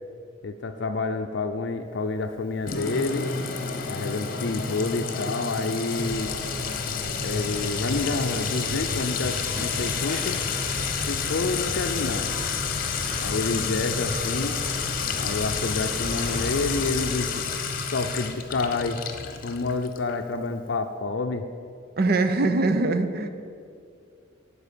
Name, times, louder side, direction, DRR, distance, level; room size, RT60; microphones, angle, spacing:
voice 1, 0.4-3.3 3.9-6.3 7.2-10.4 11.1-12.3 13.2-14.7 15.2-17.4 17.9-19.0 19.4-21.4, left 3 dB, 65° left, 7 dB, 0.5 m, -28 dB
Sink (filling or washing) / Trickle dribble / Fill (with liquid), 2.7-20.1, left 5 dB, 50° left, 1.0 m, -30 dB
sound 1, 6.0-16.9, equal, ahead, 2.7 m, -39 dB
sound 2, 8.2-13.4, equal, 30° right, 2.6 m, -43 dB
voice 2, 22.0-23.3, right 2 dB, 50° right, 9 dB, 0.7 m, -22 dB
12.0 x 4.7 x 8.3 m, 2.3 s
head